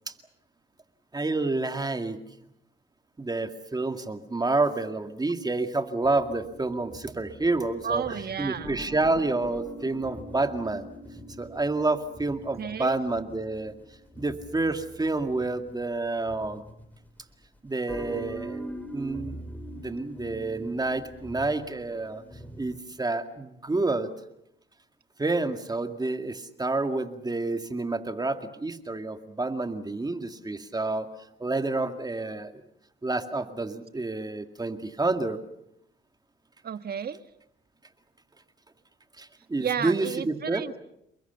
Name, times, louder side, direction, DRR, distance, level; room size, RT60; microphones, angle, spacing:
voice 1, 1.1-2.2 3.2-10.9 11.4-13.7 14.2-16.6 17.6-18.6 18.9-19.5 19.8-22.2 22.6-24.1 25.2-31.1 31.4-32.6 33.0-35.4 39.2-40.6, right 2 dB, 20° right, 7 dB, 2.1 m, -29 dB
sound 1, 6.0-17.2 17.8-22.8, equal, 10° left, 4.3 m, -43 dB
voice 2, 7.8-8.8 12.6-13.0 36.6-37.2 39.6-40.8, right 7 dB, 50° right, 11 dB, 1.5 m, -32 dB
30.0 x 21.0 x 7.0 m, 0.78 s
cardioid pair, 90°, 20 cm